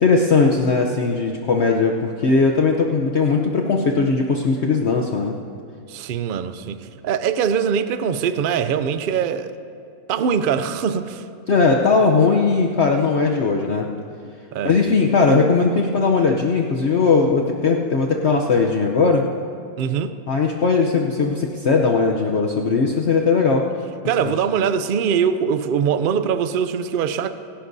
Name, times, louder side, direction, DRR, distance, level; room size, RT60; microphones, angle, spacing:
voice 1, 0.0-5.4 11.5-13.9 14.6-19.2 20.3-23.7 24.2-24.3, left 4 dB, 55° left, 0.9 m, -18 dB
voice 2, 5.9-9.5 10.1-11.2 14.5-14.7 19.8-20.1 24.1-27.3, right 7 dB, 85° right, 0.4 m, -22 dB
26.0 x 11.5 x 2.7 m
omnidirectional pair, 1.6 m